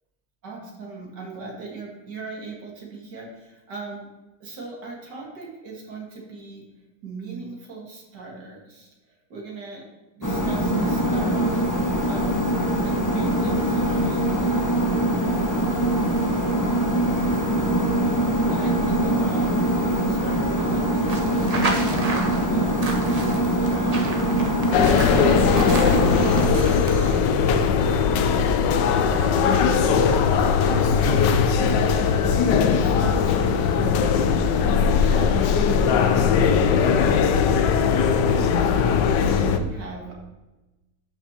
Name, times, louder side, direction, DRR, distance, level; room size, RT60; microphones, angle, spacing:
voice 1, 0.4-4.1 4.4-6.6 7.0-9.8 10.1-11.6 12.1-12.3 12.8-14.9 15.6-16.4 18.4-21.2 21.5-22.7 23.4-24.4 24.9-26.6 27.0-28.6 29.2-31.2 31.6-33.9 34.4-36.1 36.4-37.0 39.2-40.1, right 3 dB, 75° right, -2 dB, 2.4 m, -39 dB
sound 1, 10.2-26.5, right 1 dB, 15° left, 0.8 m, -23 dB
sound 2, 21.1-27.2, right 2 dB, 35° right, 0.6 m, -32 dB
sound 3, 24.7-39.6, left 6 dB, 85° left, 1.3 m, -19 dB
12.5 x 5.8 x 2.9 m, 1.1 s
omnidirectional pair, 1.8 m